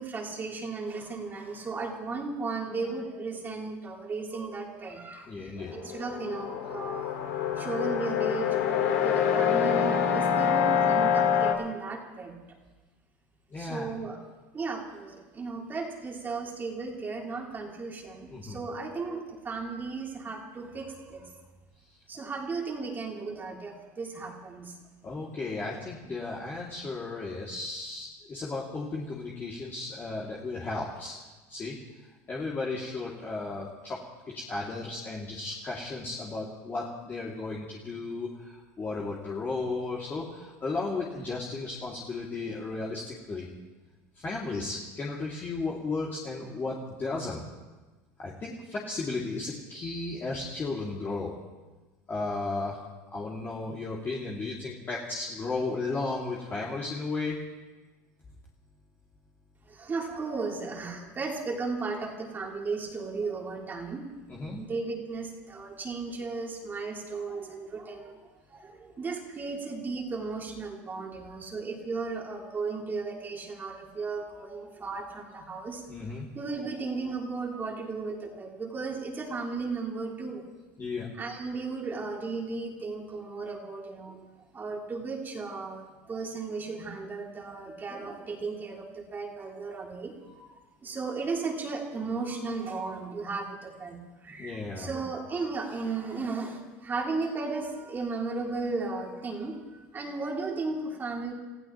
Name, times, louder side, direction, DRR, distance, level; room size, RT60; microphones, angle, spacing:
voice 1, 0.0-7.2 7.6-12.3 13.6-14.2 14.5-21.3 22.1-24.8 59.7-64.1 64.5-68.2 68.5-75.8 76.3-80.4 81.1-84.2 84.5-99.6 99.9-101.3, right 4 dB, 25° right, -1 dB, 3.2 m, -35 dB
voice 2, 5.2-5.7 13.5-13.9 18.3-18.6 25.0-31.2 31.5-31.8 32.3-34.0 34.3-43.5 44.2-47.4 48.2-51.3 52.1-52.8 53.1-57.4 64.3-64.6 75.9-76.3 80.8-81.1 94.3-94.9, left 3 dB, 25° left, -5 dB, 2.5 m, -34 dB
sound 1, 5.6-11.5, left 8 dB, 80° left, 1.9 m, -26 dB
29.5 x 15.0 x 3.0 m, 1.2 s
supercardioid pair, 105°, 8 cm